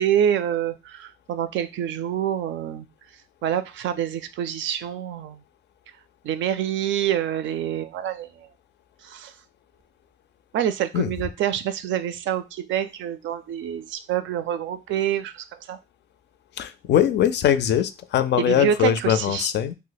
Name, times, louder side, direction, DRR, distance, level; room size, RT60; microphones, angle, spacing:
voice 1, 0.0-2.9 3.4-5.4 6.2-8.3 9.0-9.3 10.5-15.8 18.4-19.5, right 10 dB, 75° right, 0.4 m, -26 dB
voice 2, 16.6-19.7, left 10 dB, 60° left, 0.4 m, -21 dB
2.7 x 2.1 x 3.9 m
cardioid pair, 90°, 20 cm